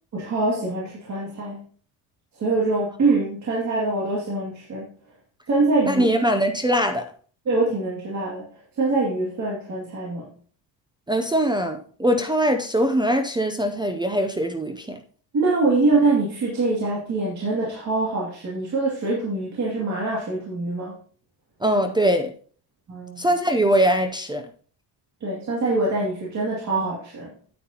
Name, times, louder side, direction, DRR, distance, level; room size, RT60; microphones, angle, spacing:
voice 1, 0.1-1.6 2.3-4.9 5.5-6.1 7.5-8.5 8.8-10.3 15.3-20.9 22.9-23.2 25.2-27.3, right 3 dB, 40° right, 2.4 m, -24 dB
voice 2, 5.9-7.1 11.1-15.0 21.6-22.3 23.2-24.5, right 1 dB, 10° right, 0.4 m, -22 dB
9.1 x 8.5 x 2.8 m
cardioid pair, 150°, 45 cm